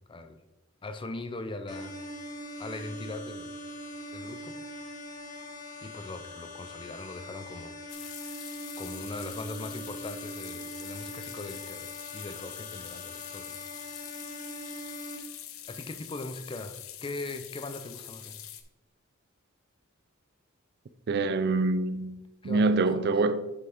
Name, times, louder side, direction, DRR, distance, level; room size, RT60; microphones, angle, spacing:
voice 1, 0.1-0.4 0.8-1.9 2.6-3.6 4.1-4.6 5.8-7.7 8.8-13.6 15.7-16.8 17.0-18.4 22.4-23.1, left 2 dB, 25° left, 0.5 m, -40 dB
sound 1, 1.7-15.2, equal, 40° left, 1.3 m, -42 dB
sound 2, 7.9-18.6, left 11 dB, 75° left, 0.7 m, -44 dB
voice 2, 21.1-22.2 22.4-23.5, right 3 dB, 50° right, 0.4 m, -25 dB
7.7 x 6.0 x 3.5 m
head